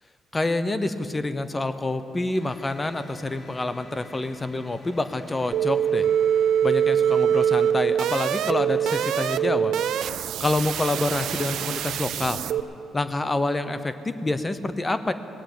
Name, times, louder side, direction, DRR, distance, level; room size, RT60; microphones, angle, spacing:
voice 1, 0.3-6.1 6.6-9.7 10.4-12.4 12.9-15.1, left 2 dB, 20° left, 11 dB, 0.8 m, -27 dB
sound 1, 2.3-9.4, left 2 dB, 45° left, 2.1 m, -48 dB
sound 2, 5.5-12.6, right 9 dB, 75° right, 0.4 m, -24 dB
19.0 x 7.7 x 8.6 m, 2.8 s
cardioid pair, 90°, 0 cm